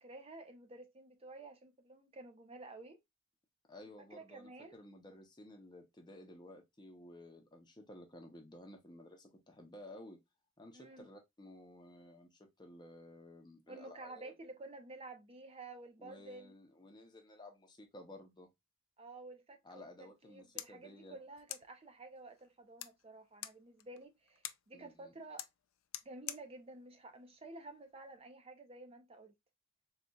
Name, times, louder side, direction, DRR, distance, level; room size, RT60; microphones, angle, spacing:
voice 1, 0.0-3.0 4.1-4.8 10.7-11.1 13.7-16.5 19.0-19.8 20.2-25.5 26.0-29.3, right 2 dB, 30° right, 0.5 m, -52 dB
voice 2, 3.7-10.2 10.6-14.3 16.0-18.5 19.6-21.2 24.7-25.1, left 1 dB, 20° left, 0.7 m, -54 dB
sound 1, 20.2-28.2, left 13 dB, 70° left, 0.3 m, -51 dB
4.1 x 2.4 x 2.3 m
head